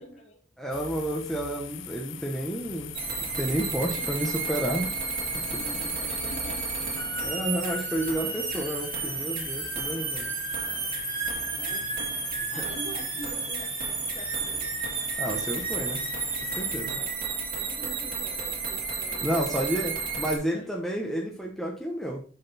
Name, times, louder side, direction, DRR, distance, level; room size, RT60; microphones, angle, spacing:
voice 1, 0.0-0.4 3.9-4.4 5.5-6.7 11.5-12.2 12.5-14.7 16.8-19.8 20.5-20.7, equal, 35° left, 2 dB, 2.1 m, -44 dB
voice 2, 0.6-3.0 3.4-4.9 7.2-10.4 15.2-16.1 16.4-17.0 19.2-22.2, right 1 dB, ahead, -1 dB, 1.1 m, -30 dB
sound 1, 0.7-16.8, left 10 dB, 65° left, 0.6 m, -40 dB
sound 2, 2.9-20.4, right 5 dB, 45° right, 2.8 m, -32 dB
6.7 x 6.6 x 4.2 m, 0.39 s
head